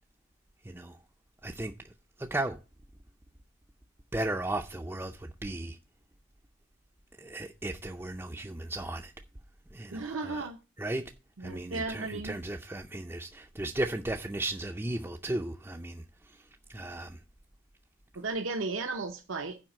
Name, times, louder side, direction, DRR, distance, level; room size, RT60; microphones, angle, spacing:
voice 1, 0.6-1.0 1.4-1.7 2.2-2.6 4.1-5.8 7.2-9.1 9.7-10.5 10.8-11.0 11.4-17.2, right 1 dB, 10° right, 0.4 m, -35 dB
voice 2, 9.9-10.6 11.4-12.4 18.1-19.6, right 3 dB, 80° right, 0.8 m, -35 dB
7.5 x 5.1 x 7.3 m
head